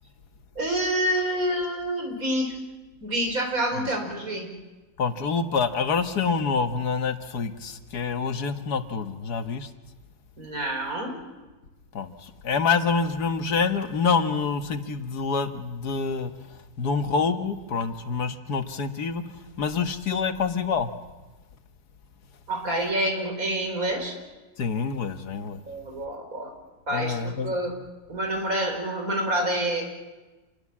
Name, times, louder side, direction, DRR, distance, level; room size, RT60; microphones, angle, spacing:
voice 1, 0.6-2.6 3.0-4.5 10.4-11.1 22.5-24.2 25.7-26.5 26.9-27.7 28.1-29.8, right 1 dB, 60° right, 3 dB, 5.0 m, -27 dB
voice 2, 5.0-9.7 11.9-16.3 16.8-19.2 19.6-20.9 24.6-25.6 26.9-27.5, left 5 dB, 90° left, 8 dB, 1.9 m, -26 dB
28.0 x 21.0 x 7.4 m, 1.2 s
omnidirectional pair, 1.6 m